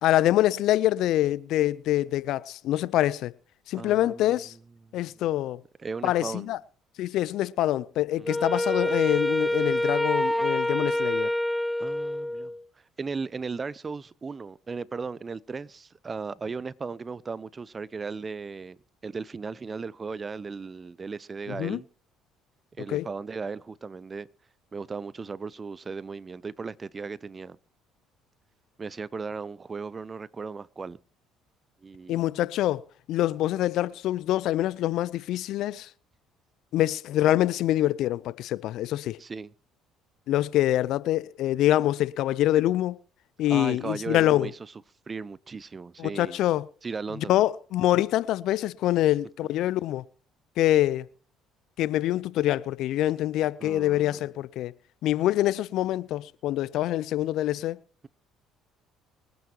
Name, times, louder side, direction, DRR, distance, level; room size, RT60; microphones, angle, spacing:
voice 1, 0.0-3.3 3.7-4.5 4.9-5.6 6.0-6.6 7.0-11.3 21.6-21.8 22.9-23.1 32.1-32.8 33.1-35.9 36.7-39.2 40.3-43.0 43.4-44.5 46.0-46.6 47.3-50.0 50.6-51.0 51.8-54.7 55.0-57.8, left 14 dB, 65° left, 0.6 m, -25 dB
voice 2, 3.7-4.4 4.8-5.1 5.8-6.5 8.2-8.4 11.8-12.5 13.0-18.8 19.0-21.9 22.8-24.3 24.7-27.6 28.8-31.0 31.8-32.3 39.2-39.5 43.5-44.7 45.1-46.4 46.8-47.4 53.6-54.2, right 4 dB, 30° right, 0.7 m, -36 dB
Wind instrument woodwind instrument, 8.2-12.6, left 1 dB, 5° left, 0.8 m, -26 dB
24.5 x 9.5 x 3.0 m
hypercardioid pair, 60°, 0 cm